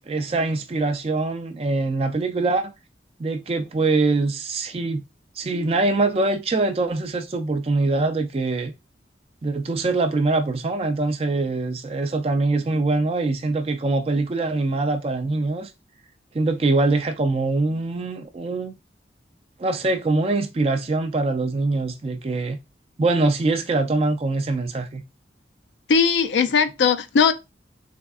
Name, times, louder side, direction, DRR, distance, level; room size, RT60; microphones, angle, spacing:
voice 1, 0.1-2.7 3.2-5.0 5.4-8.7 9.4-15.7 16.3-18.7 19.6-22.6 23.0-25.0, right 3 dB, 30° right, 0.3 m, -23 dB
voice 2, 25.9-27.3, left 6 dB, 80° left, 0.4 m, -19 dB
3.4 x 3.4 x 2.4 m
head